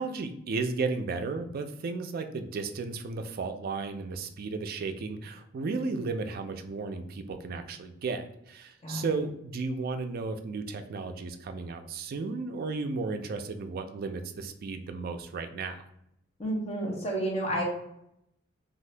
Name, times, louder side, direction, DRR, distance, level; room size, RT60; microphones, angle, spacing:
voice 1, 0.0-15.8, right 4 dB, 50° right, 7 dB, 0.3 m, -34 dB
voice 2, 16.4-17.6, right 1 dB, 35° left, -2 dB, 0.9 m, -30 dB
2.6 x 2.5 x 3.2 m, 0.77 s
head